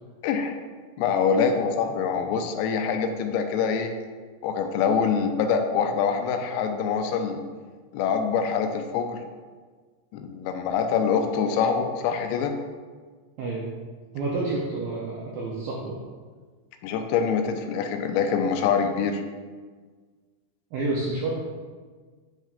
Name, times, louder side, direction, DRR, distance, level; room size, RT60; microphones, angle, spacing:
voice 1, 0.2-0.6 1.0-3.9 4.4-7.4 7.9-9.2 10.1-12.5 16.8-19.2, left 6 dB, 85° left, 5 dB, 2.8 m, -25 dB
voice 2, 13.4-13.7 14.1-16.0 20.7-21.3, right 3 dB, 85° right, -4 dB, 2.0 m, -29 dB
9.2 x 4.4 x 2.4 m, 1.5 s
omnidirectional pair, 5.0 m